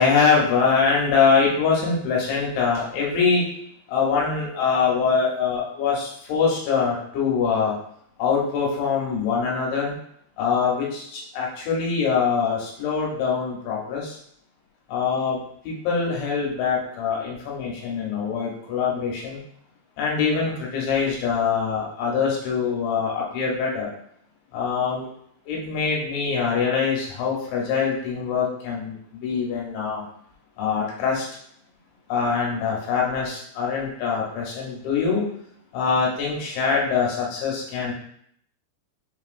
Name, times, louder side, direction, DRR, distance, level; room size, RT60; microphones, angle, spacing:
voice 1, 0.0-3.5 3.9-7.8 8.2-9.9 10.4-14.2 14.9-15.4 15.6-19.4 20.0-23.9 24.5-25.1 25.5-30.0 30.6-31.3 32.1-35.3 35.7-37.9, left 5 dB, 80° left, -3 dB, 3.3 m, -23 dB
6.6 x 2.9 x 2.5 m, 0.67 s
omnidirectional pair, 5.3 m